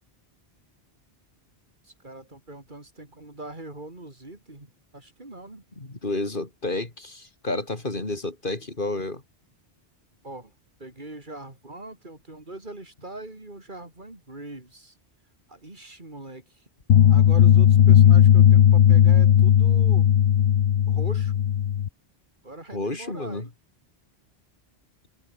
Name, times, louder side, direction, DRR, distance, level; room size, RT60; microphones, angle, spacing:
voice 1, 1.8-5.6 10.2-10.5 10.8-15.0 15.5-16.7 17.1-20.2 20.9-21.4 22.4-23.5, right 2 dB, 50° right, 3.7 m, -41 dB
voice 2, 5.8-9.2 22.7-23.5, left 2 dB, 55° left, 3.3 m, -30 dB
sound 1, 16.9-21.9, left 10 dB, 85° left, 1.0 m, -16 dB
omnidirectional pair, 1.1 m